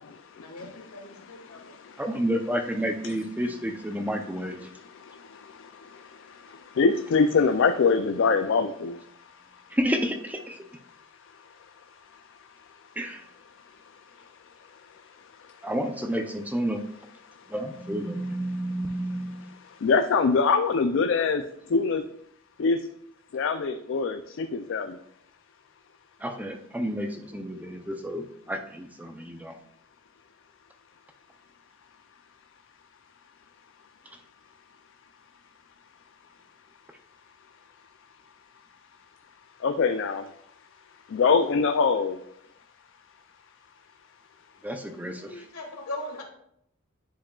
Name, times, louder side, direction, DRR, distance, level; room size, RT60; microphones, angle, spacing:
voice 1, 0.4-1.7 45.2-46.2, left 1 dB, 85° left, 2 dB, 1.5 m, -39 dB
voice 2, 2.0-4.7 9.7-10.6 13.0-13.2 15.6-16.8 17.5-19.6 26.2-29.5 44.6-45.4, equal, 5° right, 5 dB, 0.4 m, -30 dB
voice 3, 6.8-9.0 19.8-21.4 21.7-22.0 22.6-22.8 23.3-25.0 39.6-40.2 41.1-42.2, left 5 dB, 55° left, 7 dB, 0.3 m, -23 dB
10.0 x 4.8 x 2.3 m, 0.72 s
head